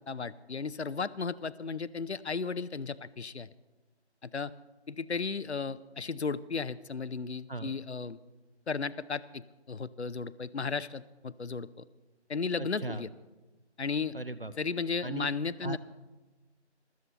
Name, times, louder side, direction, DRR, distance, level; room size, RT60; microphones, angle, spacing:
voice 1, 0.0-3.5 4.2-4.5 4.9-8.2 8.7-11.8 12.3-13.1 13.8-14.1 14.6-15.8, left 5 dB, 70° left, 17 dB, 0.6 m, -35 dB
voice 2, 12.6-13.0 14.1-14.5 15.0-15.3 15.6-15.8, right 2 dB, 55° right, 12 dB, 0.7 m, -37 dB
22.5 x 13.0 x 3.0 m, 1.2 s
figure-of-eight pair, 175°, 34 cm